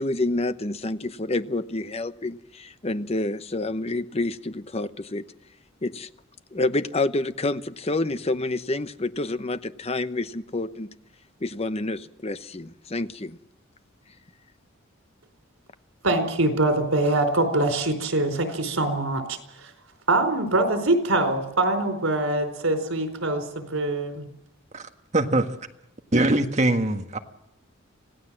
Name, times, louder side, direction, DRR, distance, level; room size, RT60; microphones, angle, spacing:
voice 1, 0.0-5.2 5.8-6.1 6.5-10.9 11.4-13.4, left 2 dB, 30° left, 12 dB, 0.9 m, -28 dB
voice 2, 16.0-19.7 20.1-24.3, right 2 dB, 85° right, 6 dB, 4.4 m, -24 dB
voice 3, 24.7-25.6 26.1-27.2, right 2 dB, 35° right, 5 dB, 1.7 m, -23 dB
26.0 x 17.5 x 7.6 m, 0.84 s
head